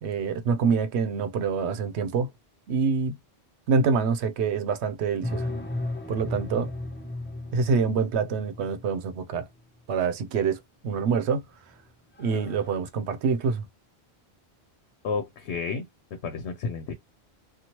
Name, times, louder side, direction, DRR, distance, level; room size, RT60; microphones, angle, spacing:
voice 1, 0.0-2.3 2.7-3.1 3.7-5.5 6.1-6.7 7.5-9.4 9.9-11.4 12.2-13.7, right 5 dB, 80° right, 0.9 m, -26 dB
sound 1, 5.2-9.1 10.9-11.4 11.8-11.9 12.2-12.8, left 2 dB, 15° left, 0.5 m, -35 dB
voice 2, 15.0-16.9, left 5 dB, 90° left, 0.9 m, -32 dB
2.9 x 2.3 x 2.8 m
omnidirectional pair, 1.1 m